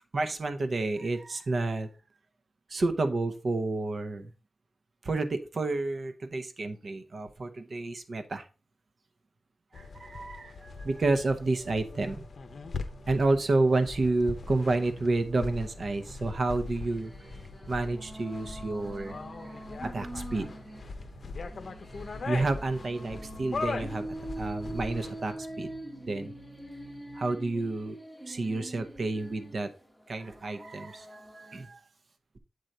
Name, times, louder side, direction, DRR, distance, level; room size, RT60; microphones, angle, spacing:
voice 1, 0.1-1.9 2.7-4.3 5.0-8.4 9.7-12.3 13.1-17.1 17.7-20.5 22.3-24.1 24.4-25.7 26.0-26.3 27.1-28.0 28.3-29.7 30.1-31.8, right 2 dB, 45° right, 8 dB, 0.8 m, -30 dB
sound 1, 9.7-25.3, left 4 dB, 50° left, 0.8 m, -40 dB
sound 2, 12.5-27.2, right 4 dB, 85° right, 0.8 m, -53 dB
sound 3, 16.7-31.7, right 1 dB, ahead, 1.0 m, -44 dB
7.8 x 3.9 x 4.2 m, 0.33 s
wide cardioid pair, 160°, 0 cm